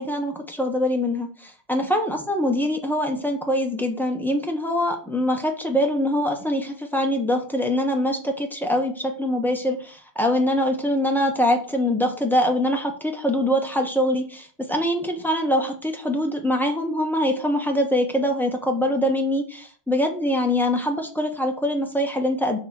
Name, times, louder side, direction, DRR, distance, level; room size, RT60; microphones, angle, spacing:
voice 1, 0.0-22.6, left 1 dB, ahead, 3 dB, 0.5 m, -23 dB
6.6 x 3.1 x 5.8 m, 0.42 s
omnidirectional pair, 1.7 m